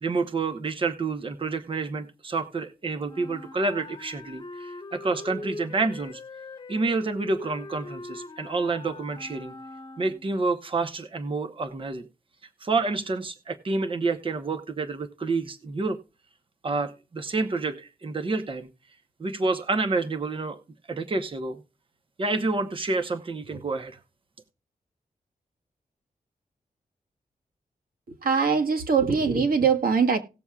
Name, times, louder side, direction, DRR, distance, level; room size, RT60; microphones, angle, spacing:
voice 1, 0.0-6.2 6.7-9.5 10.0-12.0 12.6-16.0 16.6-18.7 19.2-20.6 20.9-21.6 22.2-24.0, right 3 dB, 35° right, 7 dB, 0.9 m, -28 dB
Wind instrument woodwind instrument, 3.1-10.4, left 2 dB, 30° left, 1.1 m, -42 dB
voice 2, 28.2-30.2, right 5 dB, 85° right, 7 dB, 1.5 m, -22 dB
18.5 x 7.0 x 2.4 m, 0.31 s
wide cardioid pair, 165°, 15 cm